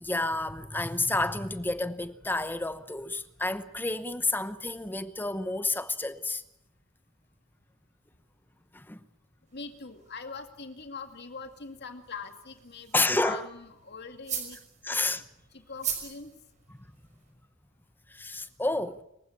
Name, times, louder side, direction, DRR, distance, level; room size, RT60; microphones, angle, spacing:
voice 1, 0.0-6.4 8.7-9.0 12.9-13.5 14.8-15.2 18.1-19.0, left 2 dB, 10° left, 0.9 m, -30 dB
voice 2, 9.5-14.6 14.9-15.0 15.5-16.3, left 4 dB, 55° left, 2.3 m, -42 dB
sound 1, 9.5-17.3, right 8 dB, 35° right, 5.7 m, -42 dB
26.0 x 15.5 x 8.7 m
head